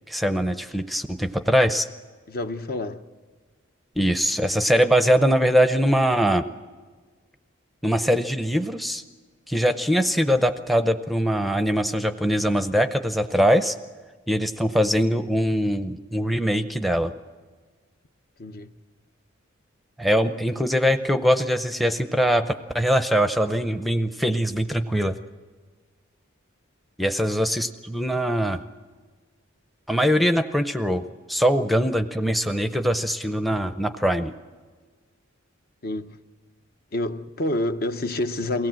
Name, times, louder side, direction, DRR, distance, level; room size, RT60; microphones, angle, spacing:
voice 1, 0.1-1.9 4.0-6.4 7.8-9.0 9.5-13.7 14.3-17.1 20.0-25.2 27.0-28.6 29.9-31.0 31.3-34.3, equal, ahead, 0.6 m, -22 dB
voice 2, 2.3-3.0 18.4-18.7 35.8-36.2 36.9-38.7, left 1 dB, 50° left, 0.8 m, -28 dB
23.0 x 17.5 x 7.6 m
head